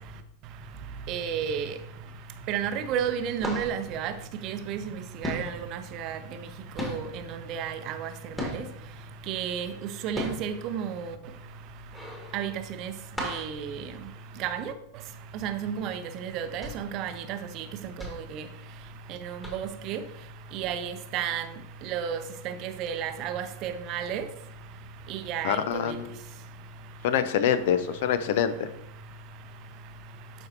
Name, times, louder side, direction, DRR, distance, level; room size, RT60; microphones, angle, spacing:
voice 1, 1.1-1.7 2.5-4.1 4.4-4.8 5.2-6.2 6.8-8.1 8.5-8.6 9.3-9.7 10.0-11.1 12.3-12.5 12.8-12.9 13.2-13.8 14.4-14.6 15.4-17.6 18.3-18.4 19.2-20.0 20.5-21.4 21.9-22.2 22.4-24.2 25.1-25.6, right 8 dB, 40° right, 0.6 m, -32 dB
sound 1, 2.4-2.7 3.0-4.9 5.2-8.9 9.4-14.7 15.0-15.1 15.5-15.7 16.3-19.1 19.4-19.9 20.6-20.7, left 1 dB, 10° left, 1.8 m, -37 dB
voice 2, 25.4-26.1 27.0-28.7, left 8 dB, 50° left, 0.5 m, -25 dB
11.5 x 4.5 x 2.8 m
figure-of-eight pair, 90°, 0 cm